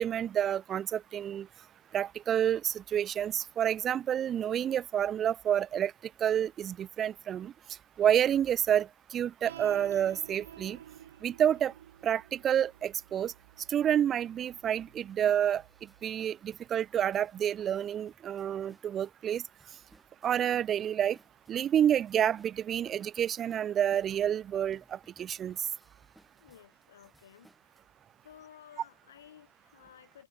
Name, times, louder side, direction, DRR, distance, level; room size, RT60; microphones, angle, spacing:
voice 1, 0.0-1.5 1.9-5.9 6.2-7.5 8.0-10.8 11.2-11.7 12.0-13.3 13.7-15.6 16.0-19.4 20.2-21.2 21.5-25.6, right 10 dB, 25° right, 0.4 m, -29 dB
sound 1, 9.5-16.1, right 10 dB, 60° right, 4.1 m, -52 dB
sound 2, 13.1-13.2 13.7-13.8 14.4-27.8, right 1 dB, ahead, 5.4 m, -64 dB
voice 2, 26.4-27.5 28.2-30.3, left 10 dB, 65° left, 7.9 m, -55 dB
figure-of-eight pair, 90°, 0 cm